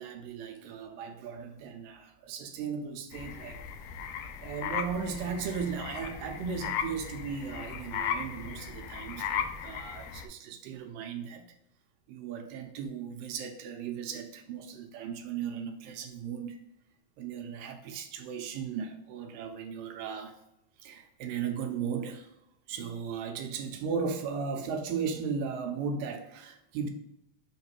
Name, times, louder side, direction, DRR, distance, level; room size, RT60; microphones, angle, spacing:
voice 1, 0.0-3.6 4.4-11.4 12.1-16.6 17.2-20.3 20.8-22.3 22.7-26.9, right 6 dB, 80° right, 5 dB, 2.3 m, -36 dB
sound 1, 3.1-10.3, left 7 dB, 85° left, 1.9 m, -37 dB
6.8 x 3.2 x 4.4 m, 0.81 s
omnidirectional pair, 4.2 m